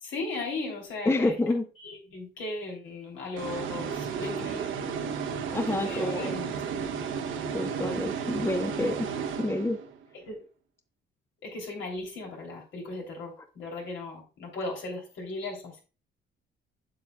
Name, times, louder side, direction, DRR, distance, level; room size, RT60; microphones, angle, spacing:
voice 1, 0.0-1.4 1.8-4.7 5.6-6.6 10.3-10.4 11.4-15.8, left 2 dB, 75° left, 0 dB, 3.1 m, -37 dB
voice 2, 1.1-1.6 5.5-6.3 7.5-9.1 9.4-9.8, left 2 dB, 10° left, 7 dB, 0.7 m, -28 dB
sound 1, 3.4-10.0, right 6 dB, 75° right, 1.0 m, -33 dB
7.7 x 6.9 x 2.3 m, 0.35 s
cardioid pair, 90°, 20 cm